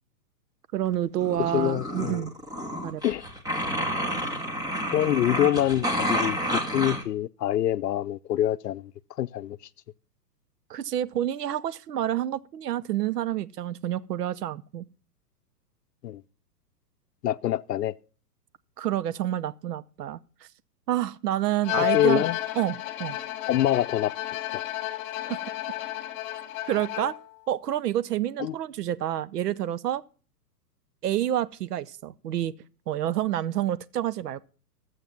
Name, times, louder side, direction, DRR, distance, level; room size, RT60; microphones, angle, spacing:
voice 1, 0.7-2.3 2.8-3.0 10.7-14.8 18.8-20.2 20.9-22.2 22.6-22.7 23.0-23.2 25.3-25.4 26.7-27.1 27.5-30.0 31.0-32.5 32.9-34.4, right 12 dB, 75° right, 0.8 m, -28 dB
sound 1, 1.2-7.0, equal, 10° right, 1.7 m, -30 dB
voice 2, 1.5-2.2 3.0-3.3 4.9-8.9 9.2-9.6 16.0-16.2 17.2-17.9 21.7-22.4 23.5-24.1 24.5-24.6 28.4-28.5, left 12 dB, 80° left, 0.6 m, -25 dB
Bowed string instrument, 21.6-27.3, left 14 dB, 35° left, 2.1 m, -32 dB
13.0 x 7.8 x 5.8 m
hypercardioid pair, 130°, 47 cm